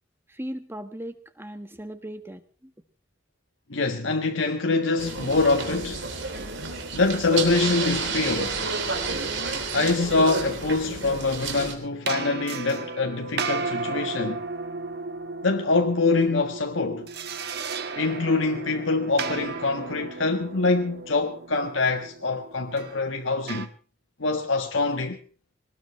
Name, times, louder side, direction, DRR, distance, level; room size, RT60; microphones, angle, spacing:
voice 1, 0.3-2.7, equal, 10° right, 1.5 m, -38 dB
voice 2, 3.7-6.1 6.9-8.6 9.7-14.5 15.4-17.1 17.9-23.7 24.2-25.2, left 3 dB, 85° left, 1.5 m, -24 dB
sound 1, 5.0-11.7, right 4 dB, 70° right, 3.6 m, -30 dB
sound 2, 6.3-8.4 12.1-23.7, right 4 dB, 55° right, 1.4 m, -35 dB
23.0 x 19.5 x 3.3 m
head